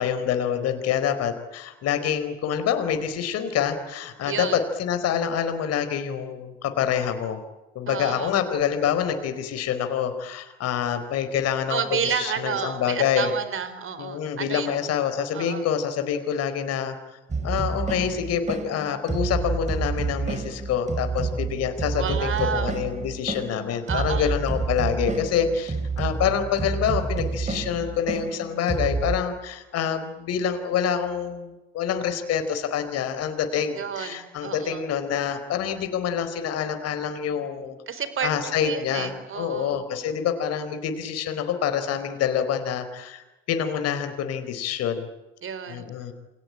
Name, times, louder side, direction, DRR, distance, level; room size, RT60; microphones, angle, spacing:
voice 1, 0.0-7.4 7.7-13.3 14.0-16.9 17.4-37.8 38.2-45.0 45.7-46.1, left 8 dB, 60° left, 9 dB, 4.4 m, -26 dB
voice 2, 4.3-4.6 7.9-8.3 11.7-14.8 15.3-15.6 21.9-22.7 23.9-24.3 33.8-34.8 37.9-39.8 45.4-45.9, right 7 dB, 45° right, 13 dB, 4.5 m, -30 dB
sound 1, 17.3-29.2, right 4 dB, 25° right, 4.4 m, -29 dB
28.5 x 23.5 x 8.9 m, 1.0 s
hypercardioid pair, 55°, 29 cm